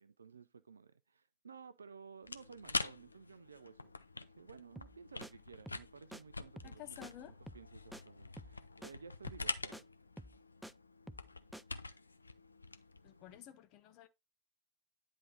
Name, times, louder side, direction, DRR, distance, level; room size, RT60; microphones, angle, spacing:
voice 1, 0.0-9.9, right 5 dB, 75° right, 0.4 m, -55 dB
sound 1, 2.2-13.4, left 3 dB, 80° left, 0.5 m, -45 dB
sound 2, 4.8-5.0 5.2-5.3 5.7-5.9 6.1-6.2 6.6-6.8 7.0-7.1 7.5-7.7 7.9-8.0 8.4-8.6 8.8-8.9 9.3-9.5 9.7-9.8 10.2-10.7 11.1-11.3 11.5-11.6, right 1 dB, 5° right, 0.3 m, -50 dB
voice 2, 6.6-7.3 13.0-14.1, left 11 dB, 40° left, 0.8 m, -52 dB
9.8 x 3.7 x 4.1 m
figure-of-eight pair, 90°, 0 cm